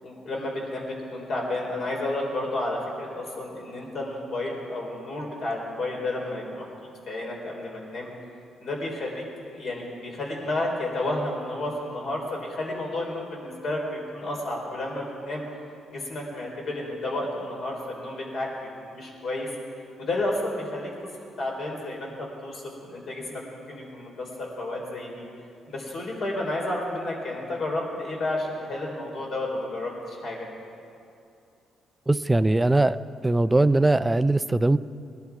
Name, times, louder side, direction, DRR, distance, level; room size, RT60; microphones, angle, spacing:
voice 1, 0.0-8.1 8.6-15.5 15.9-19.5 20.0-20.9 21.4-25.2 25.7-30.5, left 2 dB, 65° left, -1 dB, 3.8 m, -31 dB
voice 2, 32.1-33.0 33.2-34.8, right 2 dB, 15° right, 14 dB, 0.4 m, -20 dB
20.0 x 11.5 x 4.7 m, 2.6 s
cardioid pair, 90°, 0 cm